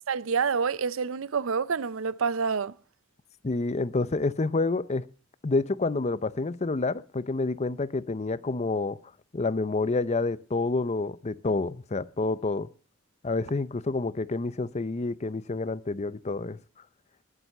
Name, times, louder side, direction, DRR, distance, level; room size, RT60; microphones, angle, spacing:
voice 1, 0.1-2.7, right 5 dB, 75° right, 0.6 m, -27 dB
voice 2, 3.4-5.1 5.4-9.0 9.3-12.7 13.2-16.6, left 3 dB, 35° left, 0.6 m, -28 dB
19.5 x 7.5 x 6.5 m
head